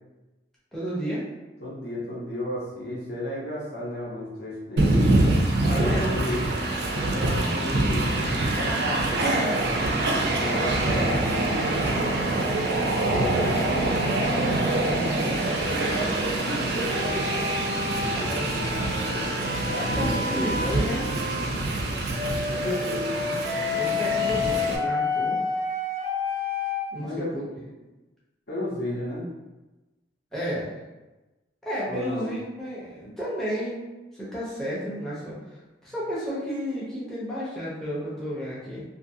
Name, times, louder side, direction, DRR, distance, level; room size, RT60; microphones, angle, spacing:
voice 1, 0.7-1.2 5.7-6.1 7.2-7.6 10.9-11.3 15.2-15.4 19.7-21.1 23.8-25.4 26.9-27.1 27.3-27.7 30.3-30.7 31.6-33.8 34.1-35.4 35.8-38.8, equal, ahead, -8 dB, 0.6 m, -32 dB
voice 2, 1.6-5.1 5.6-6.4 6.9-9.8 10.4-11.9 13.0-17.2 18.1-19.3 19.7-20.1 22.5-23.3 26.9-27.3 28.5-29.3 31.9-32.3, left 1 dB, 55° left, -5 dB, 0.8 m, -33 dB
Train, 4.8-24.8, right 2 dB, 60° right, 0.4 m, -25 dB
sound 1, 16.9-21.5 22.1-26.9, left 4 dB, 80° left, 1.2 m, -30 dB
2.6 x 2.5 x 2.6 m, 1.1 s
head